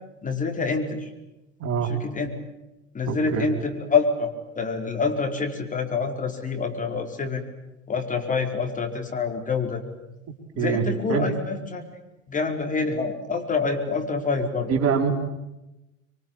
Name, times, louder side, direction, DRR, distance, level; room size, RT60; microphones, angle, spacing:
voice 1, 0.2-1.1 1.9-2.3 2.9-7.4 7.9-9.8 10.6-11.8 12.3-14.7, left 4 dB, 20° left, 3 dB, 4.7 m, -26 dB
voice 2, 1.6-1.9 3.1-3.5 10.6-11.3 14.7-15.1, right 6 dB, 35° right, 5 dB, 4.0 m, -24 dB
26.5 x 24.0 x 8.8 m, 0.96 s
figure-of-eight pair, 75°, 39 cm